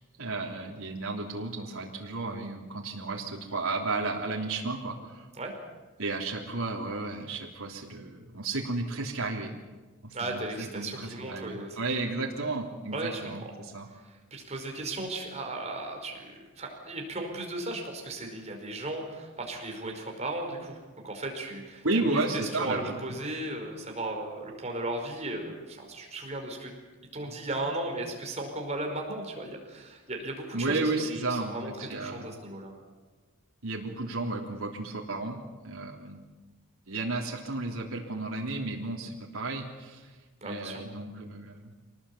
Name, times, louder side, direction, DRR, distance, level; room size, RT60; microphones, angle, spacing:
voice 1, 0.2-5.3 6.0-9.5 10.0-13.9 21.8-23.0 27.2-27.3 30.5-32.3 33.6-36.2 36.9-40.1 40.4-41.7, right 3 dB, 85° right, -1 dB, 3.4 m, -33 dB
voice 2, 10.1-11.9 12.9-13.5 13.9-16.2 16.6-26.7 27.1-32.8 40.4-40.8, right 2 dB, 30° right, 2 dB, 5.0 m, -36 dB
26.0 x 19.0 x 8.6 m, 1.3 s
head